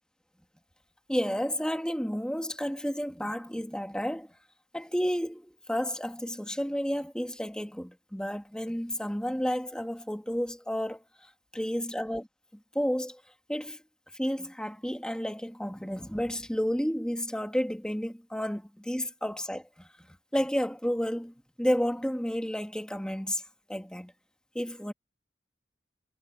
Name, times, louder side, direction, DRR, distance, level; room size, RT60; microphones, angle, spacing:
voice 1, 1.1-4.3 4.7-11.0 11.5-12.3 12.7-13.2 13.5-13.8 14.1-19.9 20.3-23.4 23.7-24.1 24.6-24.9, equal, 5° left, 2.0 m, -31 dB
head